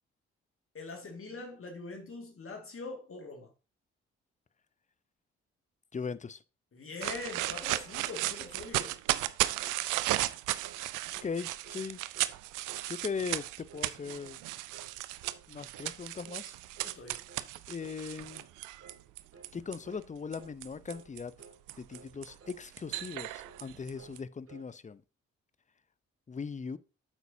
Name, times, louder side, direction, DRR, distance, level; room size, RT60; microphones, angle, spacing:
voice 1, 0.7-3.5 6.7-9.0 16.8-17.2, left 3 dB, 40° left, 2.1 m, -43 dB
voice 2, 5.9-6.4 11.2-12.0 12.9-14.4 15.5-16.5 17.7-18.4 19.5-21.3 21.8-25.0 26.3-26.8, left 5 dB, 20° left, 0.7 m, -39 dB
sound 1, 7.0-19.8 20.3-24.2, right 17 dB, 70° right, 0.6 m, -35 dB
sound 2, 8.6-8.8 9.1-9.3 9.6-9.8 10.1-10.3 10.6-10.8 11.1-11.3 11.6-11.9 12.1-12.4 12.7-12.9 13.2-13.4 13.7-13.9 14.2-14.4 14.7-14.9 15.2-15.5 15.7-16.0 16.2-16.5 16.8-17.0 17.3-17.5 17.8-18.0 18.3-18.5 18.8-19.0 19.3-19.6 19.8-20.1 20.4-20.6 20.9-21.1 21.4-21.6 21.9-22.1 22.4-22.6 22.9-23.2 23.4-23.7 24.0-24.7, right 5 dB, 45° right, 2.4 m, -55 dB
9.1 x 8.1 x 2.8 m
hypercardioid pair, 45°, 32 cm